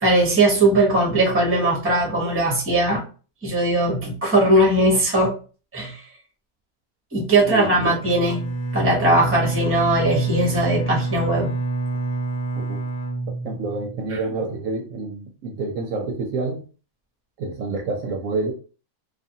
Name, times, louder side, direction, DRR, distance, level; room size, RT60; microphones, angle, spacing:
voice 1, 0.0-3.0 3.4-5.4 5.7-6.0 7.1-11.5, right 1 dB, 10° right, 0.7 m, -19 dB
voice 2, 7.5-7.9 12.6-12.8 13.4-16.6 17.4-18.5, right 3 dB, 70° right, 0.9 m, -28 dB
Bowed string instrument, 8.0-14.0, right 3 dB, 85° left, 1.2 m, -27 dB
2.5 x 2.4 x 2.7 m
omnidirectional pair, 1.6 m